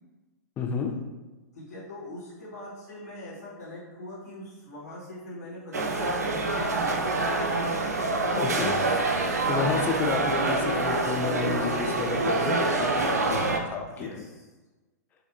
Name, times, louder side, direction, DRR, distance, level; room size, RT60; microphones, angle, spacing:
voice 1, 0.6-0.9 8.3-8.8 9.5-14.1, left 5 dB, 20° left, 3 dB, 0.4 m, -31 dB
voice 2, 1.5-7.4 9.8-10.0 13.9-14.4, left 1 dB, 80° left, -7 dB, 1.3 m, -42 dB
sound 1, 5.7-13.6, right 2 dB, 70° right, 0.5 m, -26 dB
4.8 x 2.3 x 2.5 m, 1.2 s
figure-of-eight pair, 110°, 9 cm